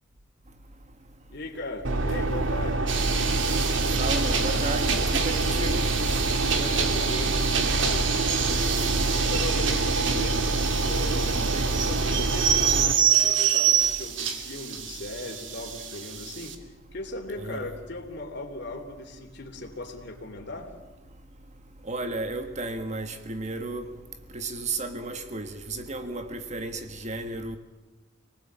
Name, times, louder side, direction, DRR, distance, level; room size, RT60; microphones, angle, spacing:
voice 1, 1.3-2.9 6.3-7.4 7.8-8.1 8.8-10.4 10.8-11.4 11.7-16.6 16.9-20.7, left 2 dB, 60° left, 3.4 m, -38 dB
sound 1, 1.8-12.9, right 2 dB, 90° right, 1.9 m, -26 dB
sound 2, 2.9-16.6, right 8 dB, 70° right, 2.6 m, -27 dB
voice 2, 4.0-5.9 11.4-11.7 17.4-17.7 21.9-23.8 24.3-27.6, right 2 dB, 35° right, 1.6 m, -33 dB
27.0 x 19.5 x 8.9 m
head